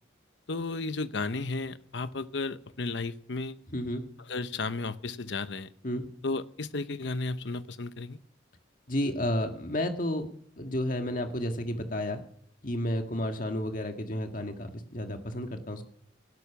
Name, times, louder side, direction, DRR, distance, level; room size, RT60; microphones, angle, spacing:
voice 1, 0.5-3.6 4.3-5.7 6.2-8.2, left 3 dB, 65° left, 13 dB, 0.9 m, -33 dB
voice 2, 3.7-4.0 5.8-6.1 8.9-10.3 10.6-12.2 12.6-15.8, left 1 dB, 45° left, 5 dB, 1.8 m, -31 dB
18.5 x 12.0 x 6.0 m, 0.65 s
head